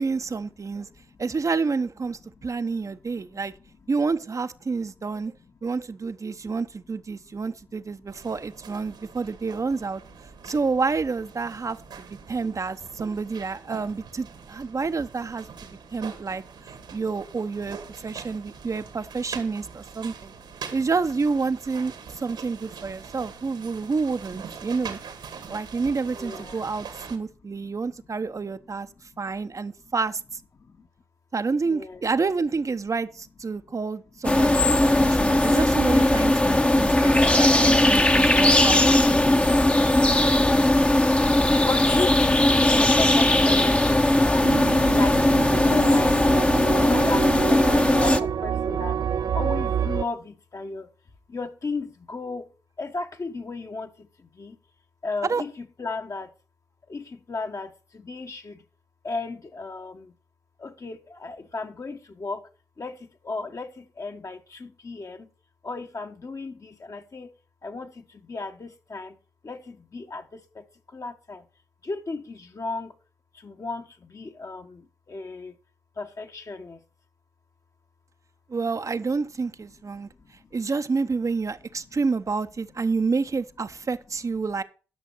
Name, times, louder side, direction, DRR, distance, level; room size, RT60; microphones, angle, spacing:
voice 1, 0.0-0.9 1.2-3.5 3.9-5.3 5.6-10.0 10.4-15.5 15.9-16.4 16.9-17.8 18.0-20.3 20.7-25.0 25.5-28.9 29.2-30.2 31.3-39.5 55.2-55.4 78.5-80.1 80.5-84.6, right 4 dB, 45° right, 0.9 m, -28 dB
voice 2, 0.6-1.2 2.2-3.8 4.8-5.8 6.3-6.5 7.2-7.5 7.8-8.1 8.9-9.0 10.1-10.5 12.2-12.3 14.7-14.8 15.6-16.2 16.6-16.8 18.1-18.6 20.6-20.8 23.1-23.3 23.7-23.8 25.3-25.7 26.1-26.7 27.1-28.1 28.4-29.9 30.6-30.9 31.6-32.0 33.5-33.7 41.6-44.6 44.9-45.2 45.5-49.0 49.3-50.9 51.3-52.5 52.8-54.6 55.0-56.3 56.9-58.6 59.0-60.1 60.6-62.5 62.8-65.3 65.6-67.3 67.6-71.4 71.8-72.9 73.3-75.6 76.0-76.8 79.9-80.5 81.8-82.0, left 3 dB, 45° left, 1.5 m, -36 dB
sound 1, 8.1-27.2, right 6 dB, 80° right, 1.9 m, -43 dB
sound 2, 34.2-48.2, left 1 dB, 15° left, 1.0 m, -19 dB
sound 3, 44.4-50.0, right 8 dB, 60° right, 0.5 m, -28 dB
11.0 x 6.3 x 6.1 m
supercardioid pair, 40°, 8 cm